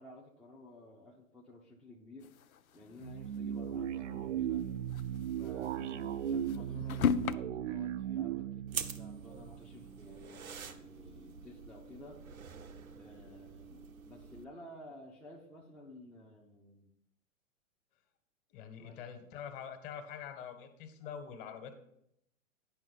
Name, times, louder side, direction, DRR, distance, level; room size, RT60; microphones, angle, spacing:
voice 1, 0.0-2.4 2.7-4.7 5.4-12.2 12.9-16.9 18.8-19.0, left 1 dB, ahead, -4 dB, 0.6 m, -53 dB
sound 1, 2.2-3.4 3.7-3.8 4.1-4.2 4.8-7.4, left 8 dB, 90° left, 0.5 m, -35 dB
sound 2, 3.0-10.2, right 10 dB, 60° right, 0.6 m, -37 dB
sound 3, 8.7-14.4, right 6 dB, 80° right, 1.0 m, -46 dB
voice 2, 18.5-21.7, left 7 dB, 40° left, 7 dB, 1.6 m, -45 dB
9.5 x 5.6 x 5.4 m, 0.75 s
hypercardioid pair, 120°, 41 cm